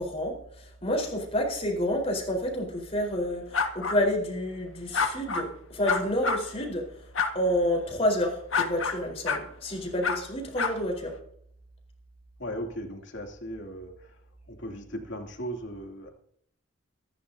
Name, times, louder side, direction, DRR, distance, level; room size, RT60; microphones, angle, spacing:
voice 1, 0.0-6.8 7.3-11.1, left 1 dB, 30° left, 1 dB, 4.4 m, -29 dB
sound 1, 3.5-4.0 4.9-5.5 5.9-6.4 7.2-7.3 8.5-9.0 9.3-9.4 10.0-10.2 10.6-10.7, left 5 dB, 80° left, 1.7 m, -26 dB
voice 2, 12.4-14.2 14.5-16.1, equal, 60° left, 1 dB, 2.9 m, -37 dB
24.5 x 11.5 x 2.8 m, 0.65 s
head